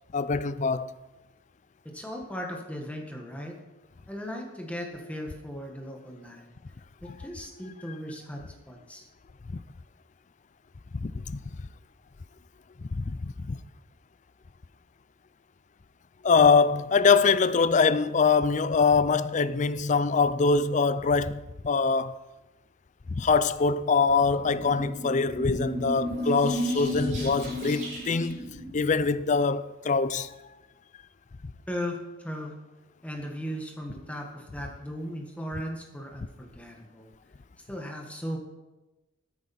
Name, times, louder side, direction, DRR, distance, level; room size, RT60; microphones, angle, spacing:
voice 1, 0.1-1.0 10.9-11.4 12.9-13.6 16.2-22.2 23.1-28.4 28.7-30.3, left 4 dB, 40° left, 0.4 m, -23 dB
voice 2, 1.9-3.6 4.1-6.5 7.0-9.0 31.7-32.5 33.0-37.1 37.7-38.4, equal, 5° left, 1.6 m, -37 dB
sound 1, 24.0-29.4, equal, 40° right, 5.1 m, -34 dB
14.0 x 9.8 x 4.3 m
head